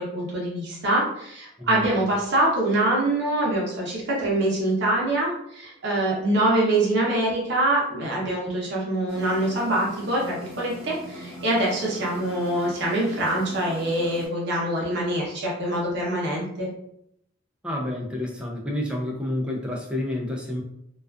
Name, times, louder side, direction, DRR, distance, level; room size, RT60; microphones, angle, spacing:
voice 1, 0.0-16.7, right 1 dB, 60° right, -3 dB, 0.7 m, -24 dB
voice 2, 1.6-1.9 17.6-20.6, left 1 dB, 5° right, -1 dB, 0.4 m, -29 dB
sound 1, 9.1-14.3, equal, 30° right, 0.8 m, -40 dB
2.3 x 2.3 x 2.3 m, 0.75 s
head